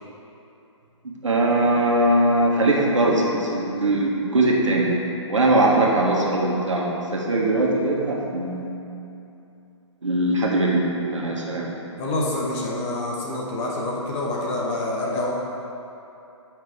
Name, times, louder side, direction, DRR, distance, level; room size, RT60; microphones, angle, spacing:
voice 1, 1.0-4.9 5.3-8.7 10.0-11.7, right 1 dB, 75° right, -3 dB, 1.5 m, -21 dB
voice 2, 12.0-15.3, left 2 dB, 25° left, -3 dB, 1.0 m, -27 dB
7.7 x 5.6 x 3.6 m, 2.8 s
figure-of-eight pair, 135°, 16 cm